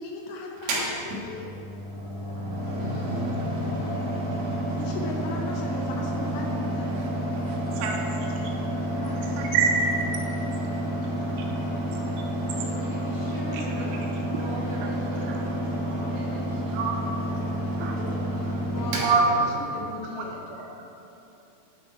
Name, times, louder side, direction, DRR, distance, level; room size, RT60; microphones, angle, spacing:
voice 1, 0.0-1.5 4.7-7.0 8.6-9.6 10.2-11.1 17.5-18.5 18.7-20.5, left 2 dB, 70° left, 0 dB, 2.6 m, -38 dB
Mechanical fan, 0.6-20.0, right 1 dB, 60° right, 1.9 m, -30 dB
voice 2, 7.5-8.5 8.9-9.1 9.4-10.3 11.0-11.1 11.4-11.5 13.5-13.6 14.8-15.6 16.7-16.9 17.8-18.0 18.9-19.2 20.2-20.3 20.5-20.7, right 5 dB, 90° right, 0 dB, 2.9 m, -28 dB
voice 3, 12.4-15.5 15.7-16.9, equal, 55° left, -10 dB, 2.1 m, -41 dB
9.4 x 6.1 x 4.1 m, 2.8 s
omnidirectional pair, 4.8 m